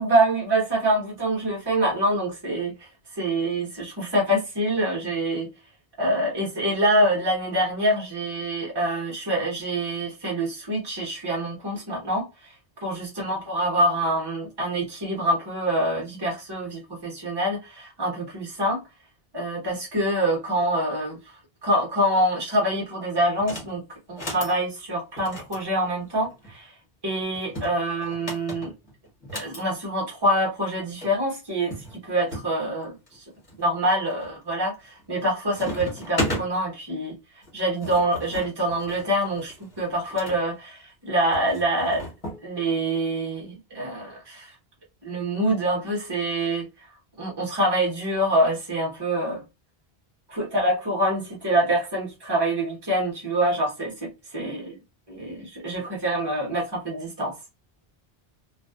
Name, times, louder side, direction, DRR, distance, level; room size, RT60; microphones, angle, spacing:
voice 1, 0.0-2.8 3.2-5.5 6.0-12.3 12.8-18.8 19.3-21.2 21.6-26.7 27.0-28.7 29.3-33.2 33.6-37.1 37.5-42.1 42.4-44.5 45.0-46.7 47.2-49.4 50.3-54.1 54.3-54.8 55.1-57.3, right 1 dB, 25° right, 1.0 m, -25 dB
sound 1, 23.4-23.7 24.1-24.6 25.2-26.5 27.3-29.6 30.7-30.8 31.0-31.1 31.7-32.5 33.1-33.6 34.1-34.5 34.8-35.2 35.5-36.5 37.4-40.4 41.3-42.4, equal, 35° left, 1.2 m, -35 dB
2.4 x 2.3 x 2.3 m
omnidirectional pair, 1.0 m